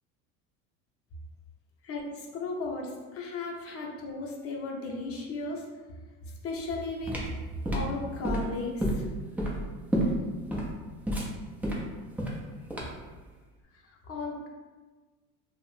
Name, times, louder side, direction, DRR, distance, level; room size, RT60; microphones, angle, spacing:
voice 1, 1.8-5.7 6.4-7.2 7.7-9.1 13.8-14.5, left 3 dB, 35° left, 0 dB, 0.6 m, -35 dB
sound 1, 6.6-13.1, right 1 dB, 5° right, 0.3 m, -30 dB
2.5 x 2.0 x 3.1 m, 1.3 s
hypercardioid pair, 80°, 42 cm